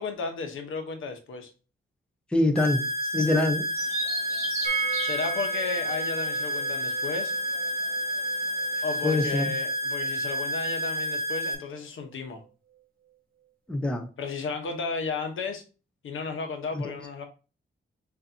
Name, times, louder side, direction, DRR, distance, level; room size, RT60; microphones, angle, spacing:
voice 1, 0.0-1.5 5.0-7.3 8.8-12.4 14.2-15.6 16.0-17.2, left 4 dB, 80° left, 1.0 m, -34 dB
voice 2, 2.3-3.7 9.0-9.5 13.7-14.1 16.7-16.9, left 2 dB, 5° left, 0.5 m, -25 dB
sound 1, 2.6-11.6, equal, 30° left, 1.7 m, -30 dB
Bird vocalization bird call bird song, 3.7-9.4, right 1 dB, 15° right, 1.5 m, -39 dB
sound 2, 4.6-10.4 10.7-10.8 11.0-11.1, right 5 dB, 45° right, 0.5 m, -37 dB
6.7 x 2.6 x 2.7 m
wide cardioid pair, 170°, 20 cm